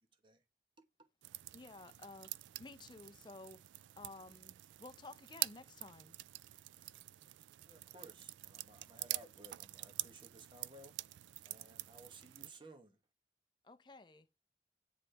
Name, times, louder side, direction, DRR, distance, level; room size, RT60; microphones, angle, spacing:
sound 1, 1.2-12.5, right 17 dB, 90° right, 0.3 m, -46 dB
voice 1, 1.5-2.3 2.6-6.1 13.6-14.3, left 3 dB, 25° left, 0.5 m, -54 dB
voice 2, 7.6-10.9 11.4-13.0, right 1 dB, 25° right, 1.1 m, -58 dB
9.6 x 4.1 x 3.3 m
head